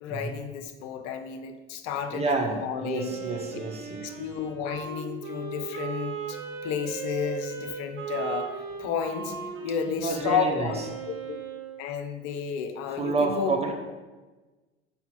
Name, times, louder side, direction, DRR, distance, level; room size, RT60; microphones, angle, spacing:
voice 1, 0.0-3.1 4.0-9.4 9.6-10.8 11.1-11.4 11.8-13.5, left 7 dB, 50° left, 7 dB, 0.7 m, -32 dB
voice 2, 2.1-4.2 9.9-10.7 12.9-13.7, right 3 dB, 20° right, 2 dB, 1.0 m, -29 dB
Wind instrument woodwind instrument, 2.9-11.8, right 6 dB, 45° right, 1.2 m, -37 dB
5.9 x 4.4 x 3.6 m, 1.2 s
figure-of-eight pair, 70°, 32 cm